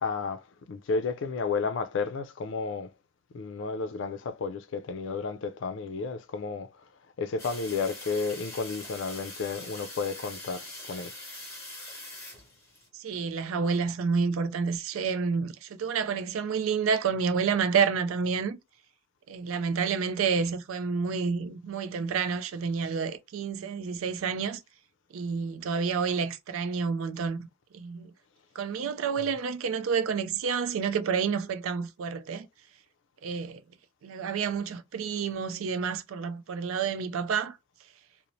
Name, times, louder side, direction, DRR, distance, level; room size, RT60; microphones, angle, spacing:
voice 1, 0.0-2.9 3.3-6.9 7.2-11.1 29.2-29.3, left 4 dB, 60° left, 0.4 m, -32 dB
sound 1, 7.4-12.9, left 2 dB, 15° left, 1.1 m, -43 dB
voice 2, 12.9-18.6 19.3-24.6 25.1-27.5 27.7-28.1 28.6-32.5 33.2-33.6 34.0-37.6, right 6 dB, 80° right, 0.4 m, -29 dB
2.6 x 2.0 x 2.9 m
head